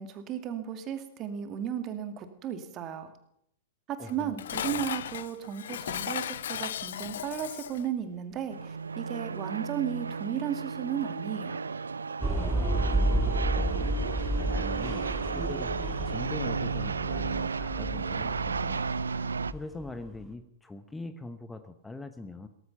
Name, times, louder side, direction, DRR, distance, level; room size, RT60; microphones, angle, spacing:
voice 1, 0.0-3.1 3.9-11.6, right 9 dB, 30° right, 8 dB, 2.2 m, -35 dB
voice 2, 4.0-4.4 12.7-15.7 16.0-22.5, left 2 dB, 10° left, 10 dB, 1.0 m, -43 dB
Dishes pots and pans, 4.1-7.9, left 10 dB, 65° left, 0.5 m, -36 dB
sound 1, 8.5-19.5, right 5 dB, 80° right, 0.5 m, -33 dB
sound 2, 12.2-20.2, right 1 dB, 5° right, 2.3 m, -31 dB
17.5 x 14.5 x 5.8 m, 0.73 s
figure-of-eight pair, 105°, 0 cm